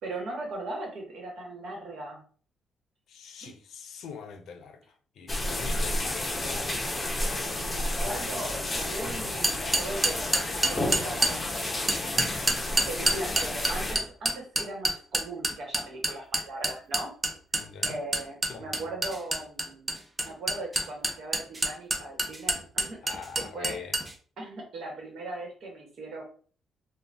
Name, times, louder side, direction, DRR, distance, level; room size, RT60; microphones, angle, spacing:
voice 1, 0.0-2.2 3.4-3.5 7.7-11.4 12.9-17.1 17.9-19.9 20.2-23.8 24.4-26.2, right 2 dB, 70° right, 1.1 m, -39 dB
voice 2, 3.1-4.8 5.2-6.6 17.5-18.0 18.5-18.7 23.0-24.0, left 6 dB, 75° left, 0.5 m, -43 dB
sound 1, 5.3-14.0, left 1 dB, 25° left, 0.6 m, -31 dB
sound 2, 9.4-11.3 11.9-24.1, right 2 dB, 20° right, 0.5 m, -26 dB
2.5 x 2.2 x 3.3 m
cardioid pair, 90°, 0 cm